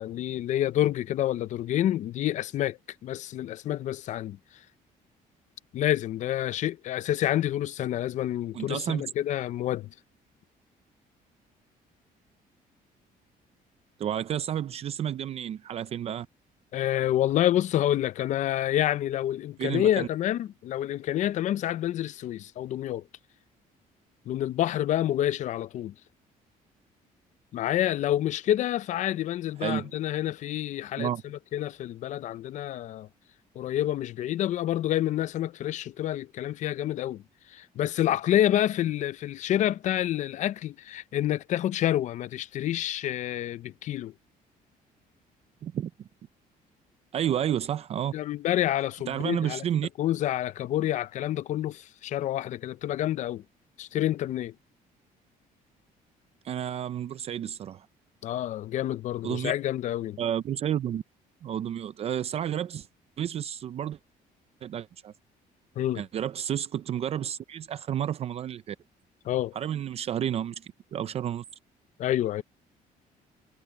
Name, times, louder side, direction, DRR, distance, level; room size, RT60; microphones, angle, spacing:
voice 1, 0.0-4.4 5.7-9.9 16.7-23.0 24.3-25.9 27.5-33.1 33.6-37.2 37.5-44.1 48.1-49.6 50.0-53.4 53.8-54.5 58.2-60.2 65.8-66.0 69.2-69.5 72.0-72.4, left 12 dB, 50° left, 0.5 m, -28 dB
voice 2, 8.5-9.0 14.0-16.3 19.6-20.1 29.6-29.9 31.0-31.2 45.6-46.1 47.1-48.1 49.1-49.9 56.4-57.9 59.2-59.5 60.2-61.0 61.4-62.9 63.2-64.0 64.6-65.1 65.9-68.8 69.5-71.4, right 10 dB, 40° right, 0.5 m, -31 dB
cardioid pair, 160°, 15 cm